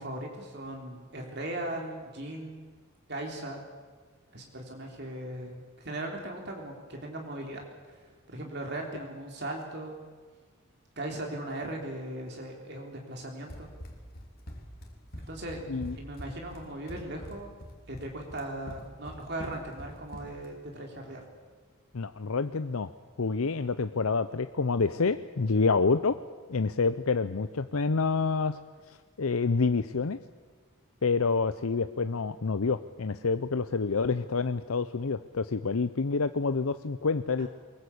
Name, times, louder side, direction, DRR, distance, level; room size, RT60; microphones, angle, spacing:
voice 1, 0.0-2.7 3.1-3.6 4.3-10.0 11.0-13.7 15.3-17.5 17.9-21.2 37.4-37.5, right 1 dB, 50° right, 1 dB, 3.6 m, -38 dB
Run, 13.5-20.5, equal, 45° left, 3.4 m, -44 dB
voice 2, 21.9-22.9 23.2-26.2 26.5-28.6 28.9-30.2 31.0-37.5, left 4 dB, 90° left, 11 dB, 0.7 m, -28 dB
23.5 x 20.5 x 8.5 m, 1.4 s
head